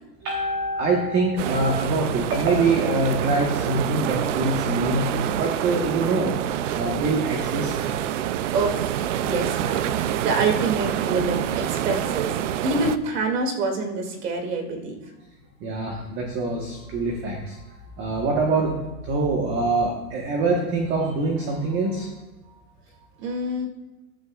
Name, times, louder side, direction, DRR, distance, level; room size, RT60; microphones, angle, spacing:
voice 1, 0.2-6.3 6.7-7.9 15.6-17.6 18.0-22.1, right 3 dB, 25° right, 0 dB, 1.3 m, -24 dB
sound 1, 1.4-13.0, right 10 dB, 50° right, 0.6 m, -27 dB
voice 2, 8.5-12.3 12.6-15.0 23.2-23.7, right 3 dB, 75° right, 3 dB, 2.6 m, -26 dB
14.0 x 10.0 x 2.4 m, 1.1 s
supercardioid pair, 155°, 47 cm